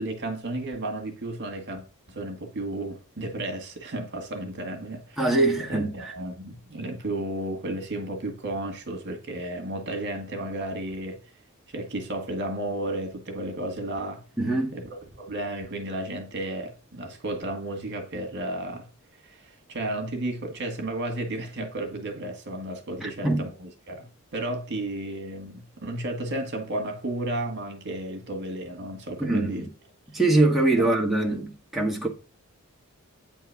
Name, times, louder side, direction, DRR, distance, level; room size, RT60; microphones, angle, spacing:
voice 1, 0.0-5.3 5.7-11.2 11.7-14.2 14.7-18.9 19.2-29.6 30.8-30.9, right 1 dB, 55° right, 1.9 m, -33 dB
voice 2, 5.2-6.1 14.4-14.7 23.0-23.5 29.2-29.7 30.1-32.1, right 2 dB, ahead, 1.7 m, -23 dB
9.1 x 4.6 x 5.8 m
head